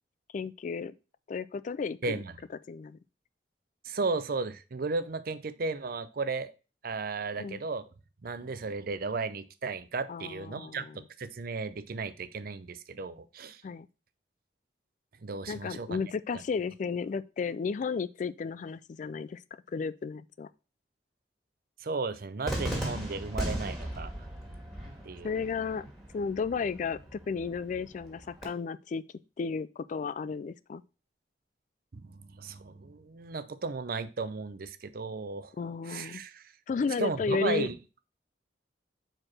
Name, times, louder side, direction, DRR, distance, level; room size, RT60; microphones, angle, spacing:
voice 1, 0.3-0.9 1.3-2.2 2.7-3.0 7.4-7.6 10.1-11.0 13.6-13.9 15.5-19.4 19.7-20.5 25.2-25.9 26.1-29.0 29.4-30.8 35.6-36.2 36.7-37.7, left 5 dB, 45° left, 0.3 m, -33 dB
voice 2, 2.0-2.3 3.8-6.5 6.8-7.9 8.2-13.6 15.2-16.0 21.8-24.3 25.0-25.4 31.9-35.5 35.9-36.4 37.0-37.8, right 4 dB, 55° right, 0.6 m, -35 dB
Cheering / Fireworks, 22.4-28.4, right 1 dB, ahead, 2.0 m, -38 dB
4.9 x 4.5 x 5.9 m
head